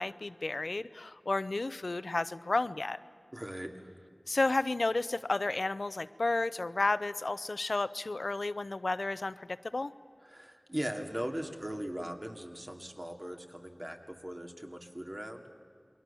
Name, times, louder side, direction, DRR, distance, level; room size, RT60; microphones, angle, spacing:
voice 1, 0.0-3.0 4.3-9.9, left 2 dB, 85° left, 15 dB, 0.6 m, -32 dB
voice 2, 3.3-3.7 10.2-15.5, equal, 30° right, 3 dB, 2.6 m, -39 dB
29.0 x 22.0 x 7.0 m, 2.3 s
wide cardioid pair, 45°, 0 cm